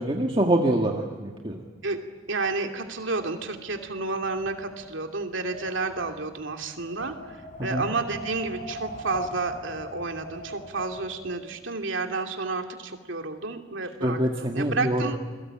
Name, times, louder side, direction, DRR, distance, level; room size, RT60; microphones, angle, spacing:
voice 1, 0.0-1.6 7.6-7.9 14.0-15.2, right 1 dB, 25° right, 1 dB, 1.9 m, -25 dB
Wind, 2.3-11.5, equal, 40° left, 5.3 m, -41 dB
voice 2, 2.3-14.2 14.5-15.2, right 3 dB, 70° right, 4 dB, 2.7 m, -31 dB
29.5 x 22.5 x 8.9 m, 1.4 s
head